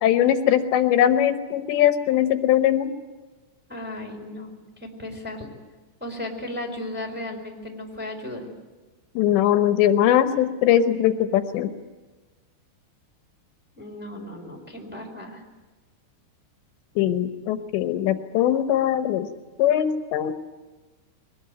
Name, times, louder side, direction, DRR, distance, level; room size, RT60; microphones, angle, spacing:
voice 1, 0.0-2.9 9.2-11.7 17.0-19.3 19.6-20.4, left 11 dB, 80° left, 9 dB, 3.2 m, -21 dB
voice 2, 3.7-4.5 4.8-5.5 6.0-8.4 13.8-15.4, left 1 dB, ahead, 0 dB, 3.7 m, -35 dB
22.5 x 21.0 x 9.2 m, 1.2 s
omnidirectional pair, 5.1 m